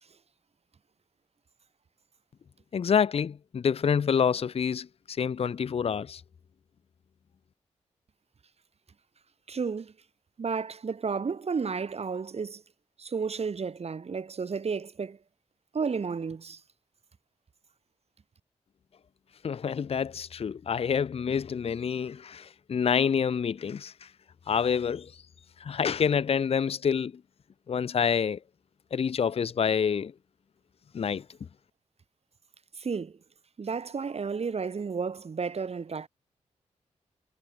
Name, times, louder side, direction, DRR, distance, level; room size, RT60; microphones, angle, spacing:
voice 1, 2.7-6.2 19.4-24.1 24.5-25.2 25.6-27.2 27.7-28.4 28.9-30.1 30.9-31.3, left 7 dB, 50° left, 0.6 m, -27 dB
voice 2, 9.5-9.9 10.4-12.6 13.0-15.2 15.7-16.6 32.8-33.2 33.6-36.1, right 5 dB, 55° right, 3.7 m, -32 dB
cardioid pair, 65°, 13 cm